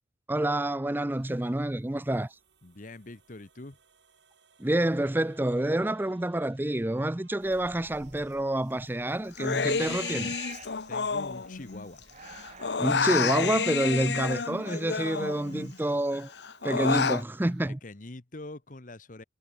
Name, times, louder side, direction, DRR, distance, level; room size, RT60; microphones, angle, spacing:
voice 1, 0.3-2.4 4.6-10.4 12.8-16.3 16.6-17.8, right 1 dB, 10° right, 0.5 m, -28 dB
sound 1, 1.1-17.7, right 4 dB, 75° right, 4.2 m, -62 dB
voice 2, 2.6-3.8 10.9-12.0 17.4-19.2, left 2 dB, 45° left, 1.2 m, -44 dB
sound 2, 7.4-12.8, right 6 dB, 40° right, 1.8 m, -48 dB
Human voice, 9.3-12.0 12.3-15.8 16.1-17.2, left 5 dB, 70° left, 0.8 m, -30 dB
head